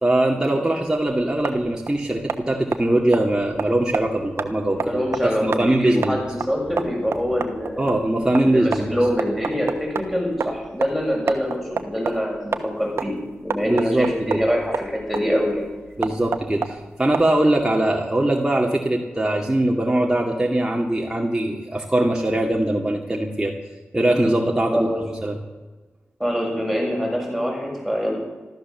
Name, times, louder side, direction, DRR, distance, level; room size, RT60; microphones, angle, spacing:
voice 1, 0.0-6.3 7.8-9.0 13.6-14.4 16.0-23.5 23.9-24.9 25.2-25.4, right 1 dB, 15° right, -1 dB, 2.2 m, -21 dB
sound 1, 0.8-17.6, right 5 dB, 70° right, 1.2 m, -31 dB
voice 2, 4.7-7.8 8.4-15.6 24.7-25.0 26.2-28.1, equal, ahead, -2 dB, 7.2 m, -25 dB
14.0 x 13.5 x 7.1 m, 1.2 s
cardioid pair, 65°, 4 cm